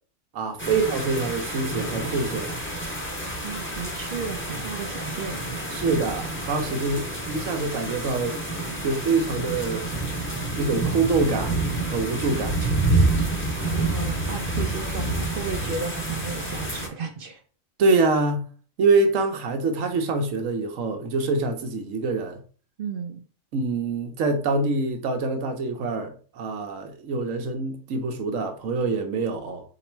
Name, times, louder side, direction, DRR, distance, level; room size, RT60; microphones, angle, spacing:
voice 1, 0.3-2.6 5.7-8.4 8.8-9.9 10.6-11.5 11.9-12.6 17.8-18.5 18.8-22.4 23.5-29.6, right 3 dB, 80° right, 1.2 m, -25 dB
sound 1, 0.6-16.9, right 2 dB, 10° left, 0.7 m, -28 dB
voice 2, 3.4-5.4 13.7-17.4 22.8-23.2, right 5 dB, 55° right, 0.7 m, -34 dB
4.0 x 2.9 x 4.4 m
omnidirectional pair, 1.3 m